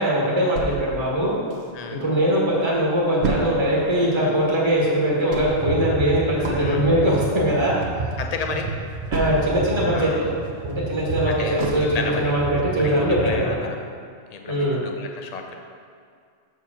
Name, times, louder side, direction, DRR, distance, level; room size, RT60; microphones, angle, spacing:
voice 1, 0.0-1.3 1.9-7.8 9.1-10.3 10.6-13.6 14.5-14.8, equal, 25° right, -5 dB, 1.4 m, -21 dB
sound 1, 0.6-2.1 2.5-2.6 2.8-9.8 10.2-12.3 12.8-12.9 13.3-13.4, right 3 dB, 70° right, 1.2 m, -32 dB
sound 2, 5.5-13.5, right 4 dB, 45° right, 0.8 m, -31 dB
voice 2, 6.5-6.9 8.2-8.7 9.9-10.2 11.3-12.3 12.8-13.7 14.3-15.6, left 5 dB, 40° left, 3 dB, 0.7 m, -32 dB
7.2 x 4.6 x 6.0 m, 2.2 s
omnidirectional pair, 1.2 m